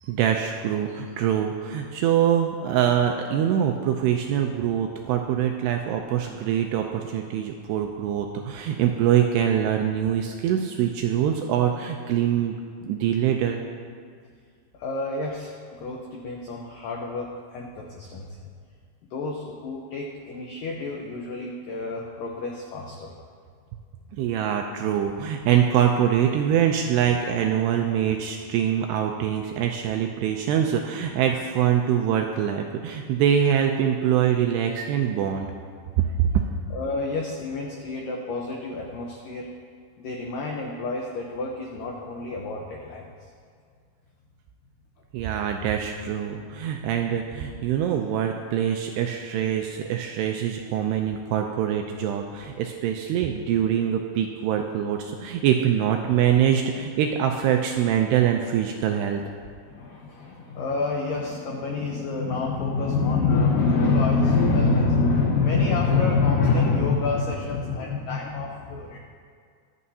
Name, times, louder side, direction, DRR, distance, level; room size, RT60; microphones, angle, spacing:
voice 1, 0.0-12.6 12.8-13.6 24.2-35.5 36.0-36.5 45.1-59.2, right 9 dB, 85° right, 3 dB, 2.4 m, -24 dB
voice 2, 14.8-18.3 19.1-23.1 36.7-39.5 40.0-43.1 59.6-69.0, left 4 dB, 85° left, 0 dB, 1.9 m, -26 dB
23.5 x 8.6 x 2.8 m, 2.1 s
omnidirectional pair, 5.3 m